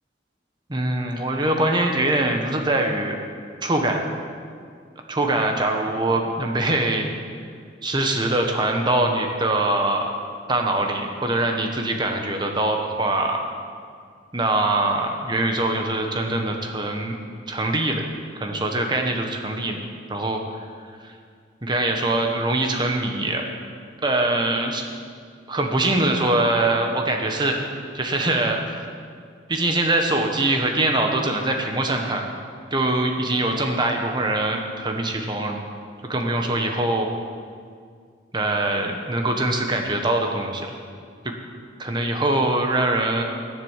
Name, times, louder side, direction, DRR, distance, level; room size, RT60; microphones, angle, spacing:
voice 1, 0.7-3.2 3.6-4.0 5.1-7.1 7.8-10.1 10.5-13.4 14.3-17.1 17.5-19.8 20.1-20.4 21.0-21.1 21.6-23.4 24.0-24.8 25.5-27.6 27.9-28.9 29.5-32.2 32.7-35.6 36.0-37.1 38.3-40.7 41.2-41.3 41.8-43.2, right 2 dB, 25° right, 3 dB, 1.3 m, -23 dB
12.0 x 10.5 x 7.4 m, 2.1 s
head